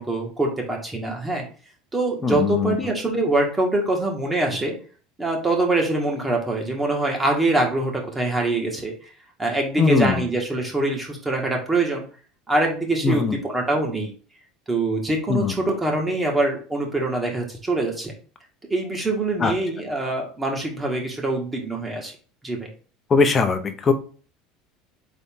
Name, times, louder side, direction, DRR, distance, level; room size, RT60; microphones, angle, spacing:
voice 1, 0.0-1.4 1.9-4.7 5.2-8.9 9.4-12.0 12.5-14.1 14.7-18.1 18.7-22.1 22.4-22.7, right 2 dB, 15° right, 0 dB, 1.6 m, -24 dB
voice 2, 2.2-2.8 9.8-10.2 13.0-13.4 15.3-15.5 19.4-19.5 23.1-23.9, left 4 dB, 30° left, 6 dB, 0.8 m, -20 dB
4.1 x 3.5 x 3.6 m, 0.39 s
supercardioid pair, 105°, 0 cm